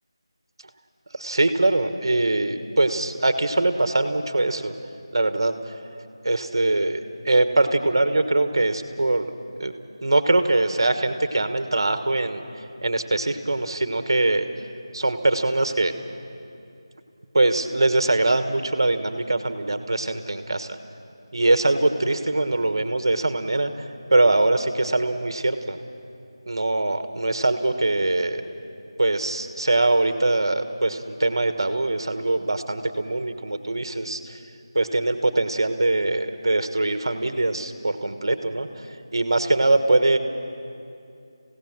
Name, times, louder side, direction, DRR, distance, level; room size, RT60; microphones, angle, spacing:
voice 1, 1.1-4.7 5.1-5.5 6.2-9.2 9.6-9.7 10.0-12.4 12.8-14.4 14.9-15.9 17.3-20.8 21.3-23.7 24.1-25.8 26.5-28.4 29.0-34.4 34.7-38.7 39.1-40.2, right 2 dB, 60° right, 9 dB, 1.4 m, -22 dB
28.0 x 16.5 x 6.1 m, 2.6 s
figure-of-eight pair, 175°, 3 cm